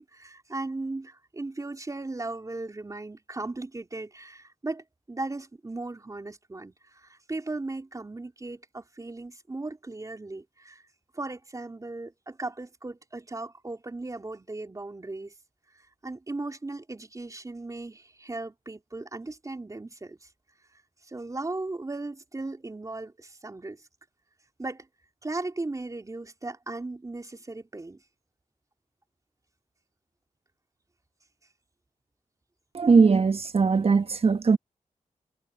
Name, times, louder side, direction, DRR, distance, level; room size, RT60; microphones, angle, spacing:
voice 1, 0.0-10.8 11.1-15.3 15.7-20.3 20.7-23.8 24.6-24.9 25.2-28.0, right 2 dB, 25° right, 3.6 m, -37 dB
voice 2, 32.7-34.6, right 5 dB, 45° right, 1.4 m, -20 dB
cardioid pair, 85°, 13 cm